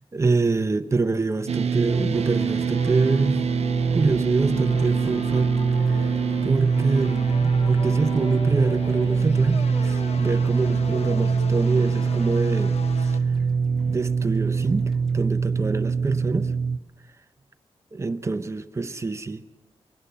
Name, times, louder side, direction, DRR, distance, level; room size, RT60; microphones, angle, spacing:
voice 1, 0.1-3.4 3.9-5.5 5.8-6.1 6.4-13.1 13.9-16.5 17.9-19.4, right 3 dB, 25° right, 10 dB, 0.8 m, -26 dB
sound 1, 1.5-16.8, right 5 dB, 75° right, 0.7 m, -23 dB
sound 2, 1.9-13.2, left 4 dB, 75° left, 1.3 m, -37 dB
sound 3, 4.1-16.3 16.6-16.7, right 1 dB, 5° left, 3.6 m, -50 dB
23.0 x 18.5 x 6.9 m, 1.1 s
wide cardioid pair, 160°, 11 cm